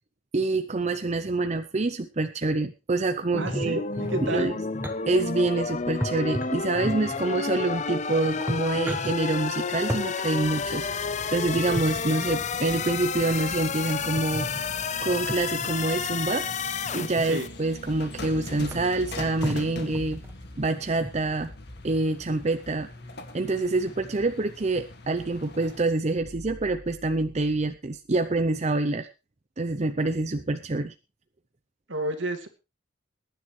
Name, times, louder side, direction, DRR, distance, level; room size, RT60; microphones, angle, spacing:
voice 1, 0.3-3.8 4.2-4.6 5.1-14.7 15.0-16.5 16.9-20.2 20.6-21.5 21.8-22.9 23.3-29.1 29.6-30.9, right 2 dB, 35° right, 8 dB, 0.6 m, -26 dB
sound 1, 3.3-17.5, left 5 dB, 40° left, 0.7 m, -31 dB
sound 2, 3.4-5.0 6.0-7.3 8.0-8.1 8.3-9.1 9.9-10.1 11.6-12.0 14.2-14.6 15.3-15.7 16.7-17.2 18.0-18.1 18.4-18.5 18.7-19.0 19.4-20.3 21.0-21.1, equal, 10° right, 1.2 m, -33 dB
voice 2, 3.4-4.5 17.2-17.5 31.9-32.5, right 2 dB, 70° right, 6 dB, 2.3 m, -31 dB
sound 3, 10.4-25.8, left 2 dB, 55° left, 2.1 m, -42 dB
21.5 x 10.5 x 3.2 m, 0.30 s
head